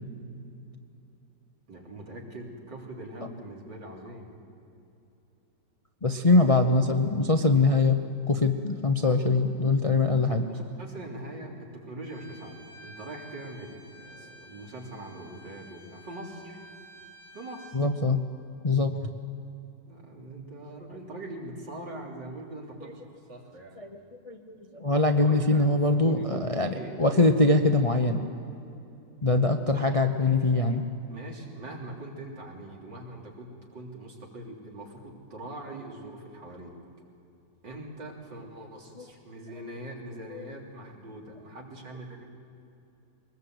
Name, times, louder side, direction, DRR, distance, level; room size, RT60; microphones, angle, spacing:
voice 1, 1.7-4.4 10.2-16.6 17.3-17.8 19.9-23.8 25.1-25.6 25.9-27.0 31.1-36.7 37.6-42.2, right 1 dB, 80° right, -2 dB, 4.1 m, -42 dB
voice 2, 6.0-8.0 8.3-10.4 17.7-18.2 18.6-19.0 23.8-28.2 29.2-30.8 39.0-39.1 40.3-40.4, left 2 dB, 30° left, 5 dB, 0.6 m, -23 dB
Bowed string instrument, 12.0-17.8, right 1 dB, 15° right, 6.8 m, -51 dB
23.0 x 20.0 x 8.0 m, 2.8 s
omnidirectional pair, 1.9 m